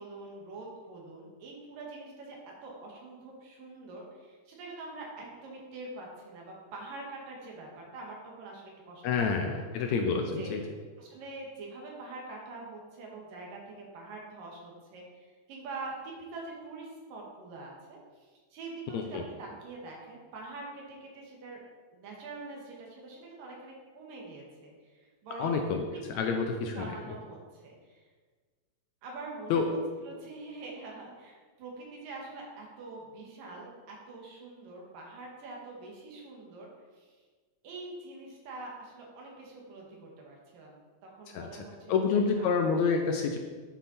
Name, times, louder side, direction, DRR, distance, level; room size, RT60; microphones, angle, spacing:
voice 1, 0.0-9.9 10.3-10.6 11.0-21.6 21.9-25.6 25.9-26.0 26.3-28.0 29.0-37.2 37.6-42.5, right 3 dB, 85° right, -2 dB, 3.5 m, -45 dB
voice 2, 9.0-10.6 18.9-19.2 25.4-25.8 26.1-26.9 29.5-29.7 41.3-41.6 41.9-43.4, left 5 dB, 75° left, 3 dB, 1.8 m, -28 dB
9.2 x 7.3 x 4.3 m, 1.5 s
omnidirectional pair, 3.8 m